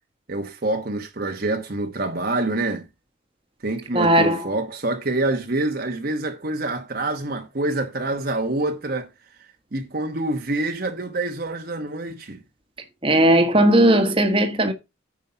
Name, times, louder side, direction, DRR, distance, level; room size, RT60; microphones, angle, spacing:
voice 1, 0.3-2.9 3.6-9.1 9.7-12.4, right 2 dB, 45° right, 1.1 m, -26 dB
voice 2, 3.9-4.5 13.0-14.7, right 1 dB, 25° right, 1.3 m, -17 dB
9.6 x 5.5 x 5.5 m
head